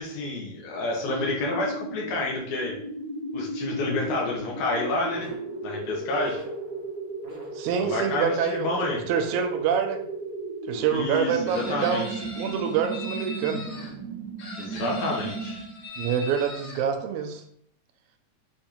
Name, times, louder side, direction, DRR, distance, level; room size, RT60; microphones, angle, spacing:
voice 1, 0.0-2.7 3.3-5.3 5.6-6.4 7.8-9.1 10.9-12.1 14.6-15.7, left 2 dB, 80° left, -1 dB, 2.2 m, -29 dB
sound 1, 1.0-15.9, right 2 dB, 65° right, 2.1 m, -35 dB
voice 2, 7.6-10.0 10.7-13.6 16.0-17.4, right 7 dB, 80° right, 5 dB, 1.9 m, -26 dB
Chicken rooster, 11.5-13.9 14.4-16.8, left 2 dB, 60° left, 1.8 m, -40 dB
6.7 x 2.6 x 2.8 m, 0.66 s
omnidirectional pair, 3.5 m